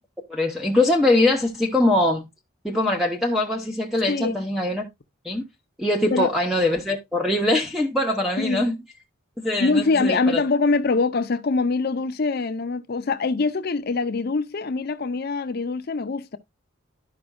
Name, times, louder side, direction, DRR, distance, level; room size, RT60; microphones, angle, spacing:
voice 1, 0.3-2.2 2.6-4.9 5.2-5.5 5.8-8.7 9.4-10.4, left 1 dB, ahead, 0.8 m, -22 dB
voice 2, 9.6-16.4, left 3 dB, 50° left, 0.5 m, -23 dB
12.0 x 5.1 x 2.2 m
head